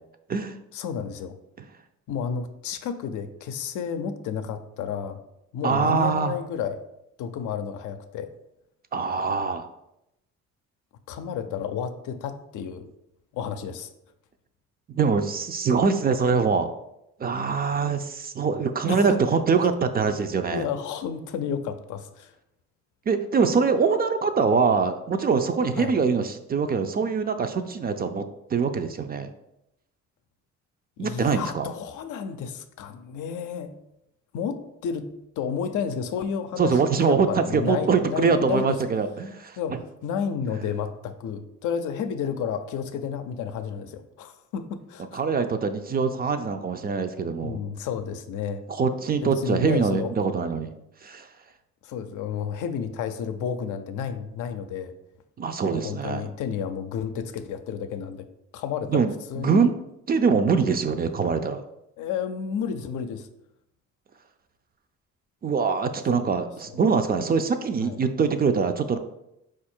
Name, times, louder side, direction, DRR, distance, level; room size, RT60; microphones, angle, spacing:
voice 1, 0.7-1.3 2.1-5.2 5.5-6.8 7.2-8.3 11.1-12.9 13.3-13.9 18.9-19.2 20.5-22.3 25.8-25.9 31.0-33.7 34.3-38.8 39.6-39.8 40.0-45.2 47.4-48.6 49.2-50.1 51.8-54.9 55.7-58.3 58.5-59.0 59.3-59.7 62.0-63.3 66.1-66.2 66.7-66.8 67.8-68.0, left 7 dB, 80° left, 9 dB, 0.5 m, -31 dB
voice 2, 5.6-6.4 8.9-9.7 14.9-16.7 17.2-20.6 23.1-28.2 28.5-29.3 31.0-31.7 36.6-39.6 45.1-47.6 48.8-50.7 51.0-51.3 55.4-56.2 58.9-59.7 60.1-61.6 65.4-69.0, right 5 dB, 30° right, 8 dB, 0.4 m, -23 dB
4.5 x 2.5 x 4.3 m, 0.85 s
cardioid pair, 90°, 30 cm